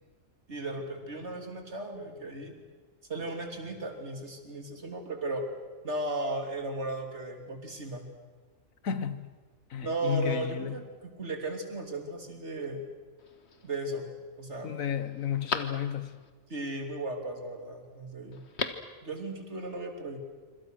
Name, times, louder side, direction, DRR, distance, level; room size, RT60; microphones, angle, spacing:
voice 1, 0.5-2.5 3.1-5.5 5.8-8.1 9.8-12.8 13.6-14.1 14.4-14.7 16.5-18.4 19.0-20.2, right 2 dB, 55° right, 3.3 m, -36 dB
voice 2, 8.8-9.4 9.7-10.8 14.6-16.2, left 8 dB, 85° left, 1.6 m, -32 dB
Telephone, 13.2-13.8 14.3-14.4 14.8-16.3 18.3-19.0 19.2-19.3, left 4 dB, 55° left, 1.7 m, -37 dB
26.0 x 26.0 x 6.4 m
omnidirectional pair, 1.4 m